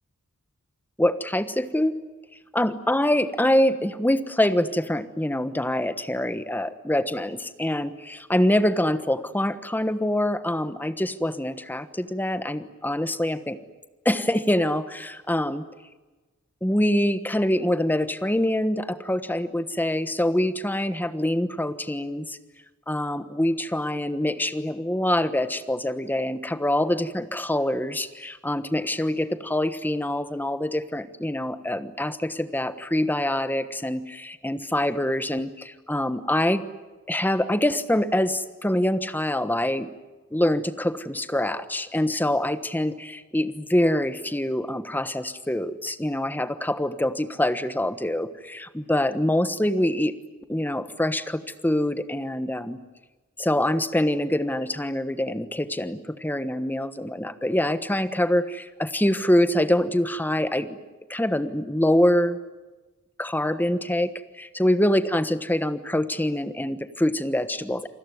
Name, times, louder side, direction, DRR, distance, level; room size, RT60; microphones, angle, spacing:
voice 1, 1.0-2.0 2.5-13.6 14.0-15.7 16.6-22.4 22.9-36.6 37.1-39.9 40.3-50.2 50.5-52.8 53.4-60.7 61.1-62.4 63.2-64.1 64.4-67.9, left 1 dB, 10° left, 11 dB, 1.3 m, -25 dB
28.0 x 20.5 x 9.5 m, 1.2 s
head